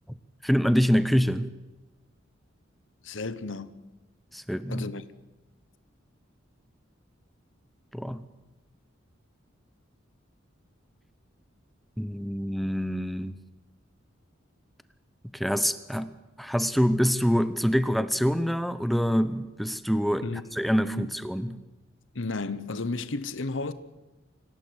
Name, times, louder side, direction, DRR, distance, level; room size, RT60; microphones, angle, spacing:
voice 1, 0.4-1.5 4.3-4.9 7.9-8.2 12.0-13.4 15.3-16.1 16.4-20.3 20.5-21.6, equal, ahead, 0.7 m, -25 dB
voice 2, 3.0-3.7 4.7-5.0 20.2-20.4 20.8-21.1 22.1-23.7, left 3 dB, 70° left, 1.1 m, -33 dB
25.5 x 16.5 x 8.1 m
head